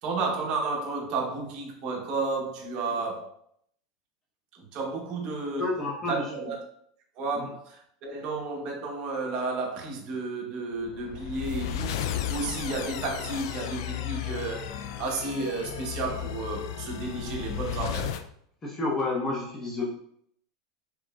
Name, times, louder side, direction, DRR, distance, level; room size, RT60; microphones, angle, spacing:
voice 1, 0.0-3.3 4.5-5.7 6.1-6.6 7.2-14.7 15.0-18.2, right 3 dB, 40° right, 1.0 m, -32 dB
voice 2, 5.6-6.5 7.4-7.5 18.6-19.9, left 2 dB, 20° left, 0.8 m, -30 dB
sound 1, 10.9-18.3, left 10 dB, 75° left, 0.3 m, -34 dB
4.8 x 2.9 x 2.3 m
supercardioid pair, 140°, 2 cm